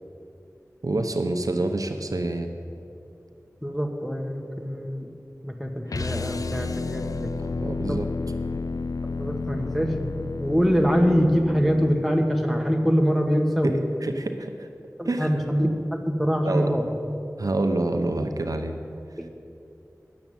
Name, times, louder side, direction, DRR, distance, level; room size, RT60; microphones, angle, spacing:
voice 1, 0.8-2.5 7.4-8.1 13.6-13.7 14.0-14.7 15.0-15.3 16.5-16.7 17.4-18.7, right 2 dB, 75° right, 5 dB, 0.7 m, -27 dB
voice 2, 3.6-5.1 5.4-7.3 7.9-8.0 9.2-9.9 10.4-13.9 15.0-15.7 16.1-16.8 19.2-19.3, equal, ahead, 1 dB, 1.4 m, -24 dB
sound 1, 5.9-12.0, left 4 dB, 75° left, 0.4 m, -31 dB
9.6 x 7.1 x 9.0 m, 2.6 s
wide cardioid pair, 40°, 6 cm